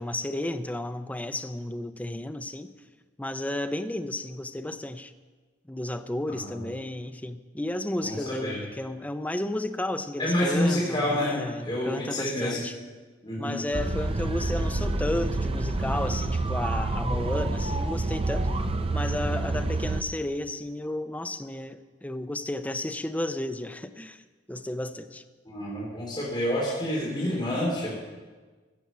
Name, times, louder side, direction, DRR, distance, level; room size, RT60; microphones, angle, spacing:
voice 1, 0.0-2.7 3.2-5.1 5.7-12.7 13.4-18.5 18.9-24.2 24.5-25.2, left 1 dB, 10° left, 0.5 m, -33 dB
voice 2, 6.3-6.7 8.0-8.6 10.2-12.7 13.2-13.6 25.4-28.0, left 1 dB, 25° left, 3.3 m, -28 dB
sound 1, 13.7-20.0, right 2 dB, 30° right, 0.7 m, -28 dB
15.5 x 6.9 x 7.4 m
head